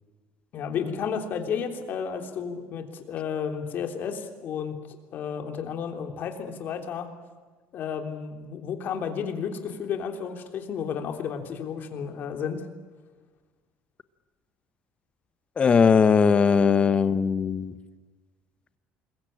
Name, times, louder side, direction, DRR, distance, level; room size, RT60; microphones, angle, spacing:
voice 1, 0.5-4.8 5.1-7.1 7.7-12.6, left 7 dB, 45° left, 5 dB, 3.3 m, -32 dB
voice 2, 15.6-17.7, left 6 dB, 25° left, 13 dB, 1.1 m, -19 dB
26.5 x 22.0 x 8.8 m, 1.4 s
cardioid pair, 155°, 4 cm